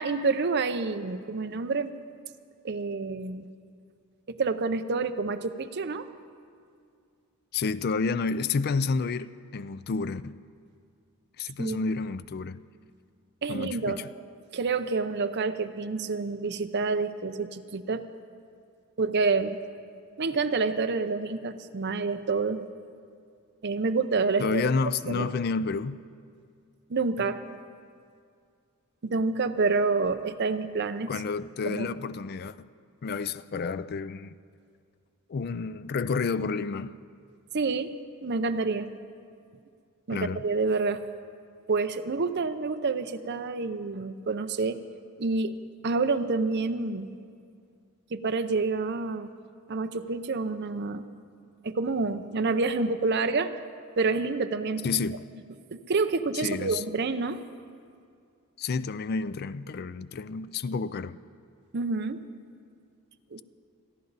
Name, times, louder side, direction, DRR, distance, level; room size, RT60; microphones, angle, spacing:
voice 1, 0.0-1.9 2.6-3.5 4.3-6.1 11.6-11.8 13.4-14.0 14.5-18.1 19.0-19.6 20.2-22.6 23.6-24.6 25.1-25.3 26.9-27.4 29.0-31.1 31.6-31.9 37.5-37.9 38.2-38.9 40.1-41.0 41.7-44.8 45.2-45.6 45.8-47.2 48.1-49.3 49.7-51.0 51.6-53.6 54.0-54.9 55.7-57.4 61.7-62.2 63.3-63.4, right 4 dB, 50° right, 9 dB, 0.6 m, -28 dB
voice 2, 7.5-10.4 11.4-12.6 13.5-14.1 24.4-26.0 31.1-32.7 33.0-34.3 35.3-37.0 40.1-40.4 54.8-55.2 56.3-56.8 58.6-61.2, left 4 dB, 45° left, 15 dB, 0.4 m, -30 dB
28.5 x 10.5 x 4.0 m, 2.3 s
head